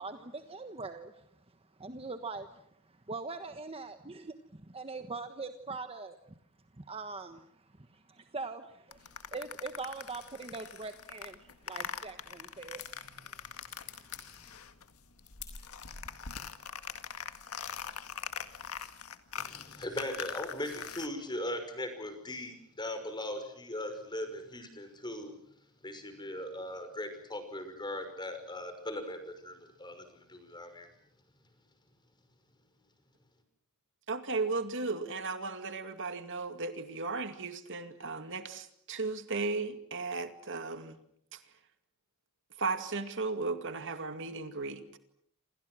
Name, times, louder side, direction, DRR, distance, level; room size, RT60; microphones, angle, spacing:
voice 1, 0.0-6.3 6.7-14.6, right 3 dB, 25° right, 8 dB, 1.3 m, -43 dB
sound 1, 8.9-14.9 15.2-21.1, left 7 dB, 70° left, 1.9 m, -43 dB
sound 2, 12.2-19.1, left 10 dB, 55° left, 4.8 m, -54 dB
voice 2, 19.4-25.4 25.8-30.9, left 1 dB, 20° left, 8 dB, 5.5 m, -39 dB
voice 3, 34.1-41.0 42.6-45.0, right 3 dB, 60° right, 9 dB, 2.3 m, -35 dB
28.5 x 28.0 x 6.3 m, 0.69 s
head